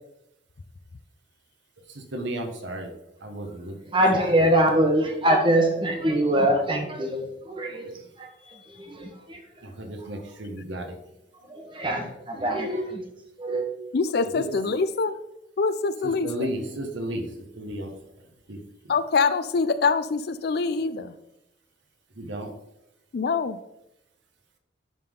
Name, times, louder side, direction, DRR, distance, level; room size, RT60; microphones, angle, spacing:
voice 1, 1.9-2.9 3.2-3.7 4.4-4.5 7.9-8.1 9.6-11.0 14.3-14.7 16.0-17.9 18.5-18.6 22.1-22.5, right 1 dB, 85° right, 4 dB, 1.2 m, -34 dB
voice 2, 3.9-7.9 8.2-8.3 8.8-9.4 11.5-13.0 13.4-13.6, right 1 dB, 25° right, 3 dB, 1.1 m, -23 dB
voice 3, 13.9-15.1 15.6-16.5 18.9-21.1 23.1-23.6, left 4 dB, 55° left, 13 dB, 0.4 m, -24 dB
11.0 x 3.8 x 3.7 m, 0.85 s
head